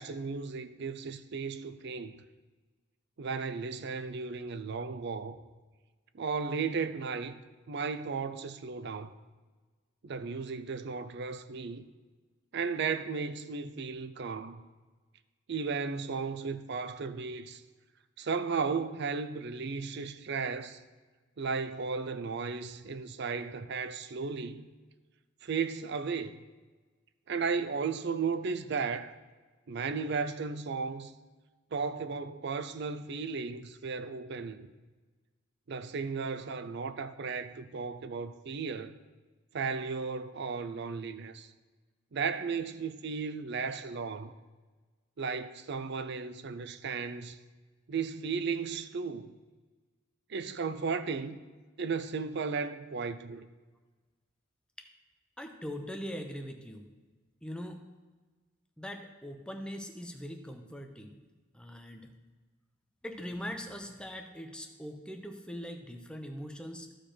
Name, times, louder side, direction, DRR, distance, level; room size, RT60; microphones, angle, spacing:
voice 1, 0.0-2.2 3.2-5.4 6.1-7.4 7.7-9.1 10.0-11.8 12.5-14.6 15.5-17.6 18.2-20.8 21.4-24.7 25.4-26.4 27.3-29.1 29.7-31.1 31.7-34.7 35.7-39.0 39.5-41.5 42.1-44.3 45.2-47.4 47.9-49.3 50.3-51.4 51.8-53.5, right 5 dB, 55° right, 0.5 m, -35 dB
voice 2, 55.4-56.9 57.4-57.8 58.8-61.2 61.5-62.2 63.0-67.0, equal, 5° left, 0.8 m, -41 dB
14.0 x 5.0 x 4.4 m
head